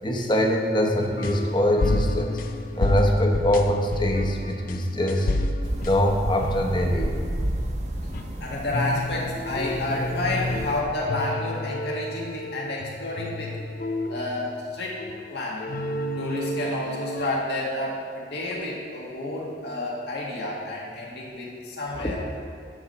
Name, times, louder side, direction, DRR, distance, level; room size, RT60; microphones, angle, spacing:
voice 1, 0.0-2.4 2.7-5.3 5.8-7.1 21.9-22.1, left 1 dB, 25° left, 2 dB, 0.9 m, -23 dB
sound 1, 0.9-7.6 7.9-17.3, left 1 dB, 50° left, 0.5 m, -31 dB
sound 2, 5.6-10.8, right 1 dB, 40° right, 0.7 m, -32 dB
voice 2, 8.4-13.6 14.1-15.0 15.3-15.7 16.2-22.3, left 2 dB, 70° left, -4 dB, 1.8 m, -30 dB
9.8 x 4.3 x 6.7 m, 2.4 s
head